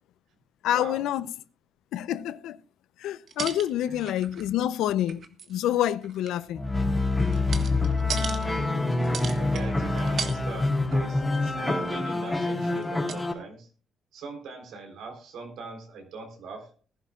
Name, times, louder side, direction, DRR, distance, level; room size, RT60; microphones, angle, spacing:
voice 1, 0.6-1.3 1.9-2.6 3.0-6.6, left 12 dB, 85° left, 0.6 m, -27 dB
sound 1, 3.3-4.6 4.8-5.6 6.0-8.5 9.0-9.7 10.0-10.4 10.7-10.9 11.3-12.1 12.8-12.9 13.1-13.2, right 6 dB, 60° right, 1.5 m, -37 dB
sound 2, 6.5-13.3, left 2 dB, 10° left, 3.5 m, -26 dB
voice 2, 7.5-8.2 8.7-11.2 11.5-13.7 14.1-16.7, right 4 dB, 80° right, 3.8 m, -41 dB
20.5 x 11.0 x 2.4 m
cardioid pair, 90°, 0 cm